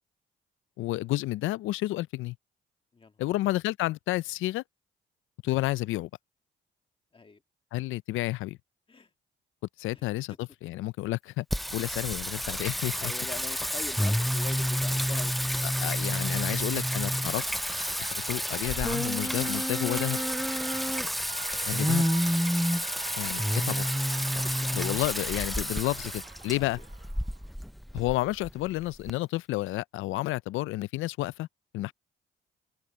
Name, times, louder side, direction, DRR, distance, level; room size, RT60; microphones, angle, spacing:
voice 1, 0.8-2.4 3.2-4.6 5.4-6.1 7.7-8.6 9.8-11.5 11.7-13.1 15.8-17.4 18.0-20.2 21.7-22.1 23.2-23.8 24.7-26.8 27.9-31.5 31.7-31.9, left 17 dB, 85° left, 0.4 m, -31 dB
voice 2, 2.9-3.4 7.1-7.4 8.9-9.1 9.9-10.1 13.0-16.0 24.2-24.7 26.6-26.9, left 4 dB, 25° left, 1.7 m, -45 dB
Singing, 11.5-29.1, equal, ahead, 0.5 m, -29 dB
Alarm, 16.5-27.5, right 8 dB, 55° right, 1.0 m, -46 dB
open air
cardioid pair, 90°, 20 cm